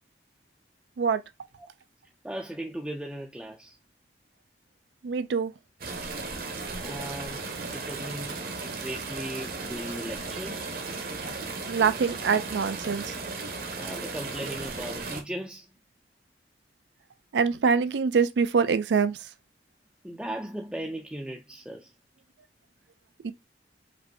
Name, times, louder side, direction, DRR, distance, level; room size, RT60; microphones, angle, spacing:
voice 1, 2.2-3.8 6.8-10.7 13.7-15.7 20.0-21.9, right 1 dB, 5° right, 0.4 m, -37 dB
voice 2, 5.0-5.5 11.7-13.0 17.3-19.2 23.2-23.3, right 5 dB, 80° right, 0.4 m, -24 dB
sound 1, 5.8-15.2, right 3 dB, 55° right, 0.9 m, -35 dB
5.2 x 2.6 x 2.6 m
head